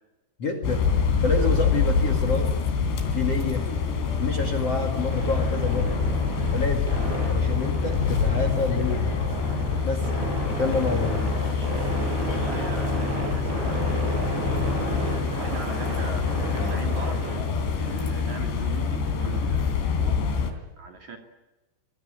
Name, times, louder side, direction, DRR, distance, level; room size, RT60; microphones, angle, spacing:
voice 1, 0.4-0.8 1.2-2.5 3.1-3.7 4.2-6.0 6.5-6.9 7.3-9.3 9.8-10.3 10.6-11.3, left 3 dB, 40° left, 7 dB, 2.5 m, -28 dB
sound 1, 0.6-20.5, left 5 dB, 70° left, 5.2 m, -26 dB
sound 2, 5.1-17.3, equal, 70° right, 9.6 m, -31 dB
voice 2, 12.3-14.8 15.4-17.2 17.7-20.2 20.8-21.2, right 5 dB, 45° right, 3 dB, 3.3 m, -40 dB
24.5 x 22.0 x 8.8 m, 1.1 s
omnidirectional pair, 5.3 m